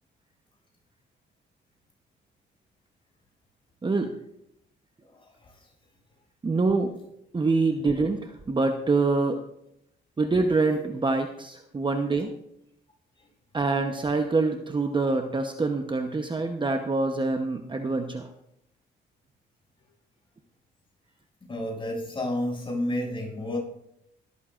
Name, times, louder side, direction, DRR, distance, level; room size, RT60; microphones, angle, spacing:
voice 1, 3.8-4.1 6.4-6.9 7.3-9.4 10.2-12.3 13.5-18.3, right 3 dB, 25° right, 5 dB, 0.9 m, -25 dB
voice 2, 21.4-23.6, left 1 dB, 25° left, -2 dB, 6.8 m, -30 dB
20.5 x 13.5 x 2.5 m, 0.77 s
cardioid pair, 90°, 20 cm